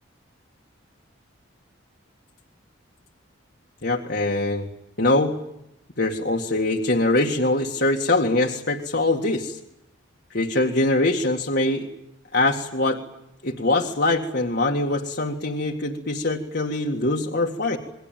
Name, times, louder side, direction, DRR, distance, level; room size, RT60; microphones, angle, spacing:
voice 1, 3.8-4.7 5.0-5.3 6.0-9.6 10.3-11.9 12.3-13.0 13.4-17.8, left 2 dB, 50° left, 2 dB, 2.0 m, -23 dB
28.0 x 22.0 x 9.2 m, 0.84 s
head